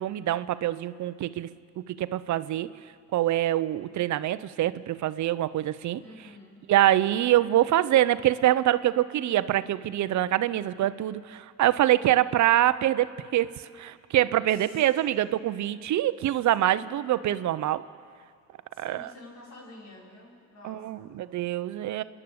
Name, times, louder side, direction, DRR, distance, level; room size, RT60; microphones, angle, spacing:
voice 1, 0.0-1.5 1.8-2.7 3.1-6.0 6.7-13.5 13.8-17.8 18.8-19.1 20.6-22.0, right 13 dB, 70° right, 15 dB, 0.7 m, -25 dB
voice 2, 6.0-6.7 14.5-14.9 16.6-16.9 18.7-21.1 22.0-22.1, left 1 dB, 60° left, -2 dB, 5.3 m, -49 dB
27.5 x 11.0 x 8.7 m, 2.2 s
cardioid pair, 90°, 30 cm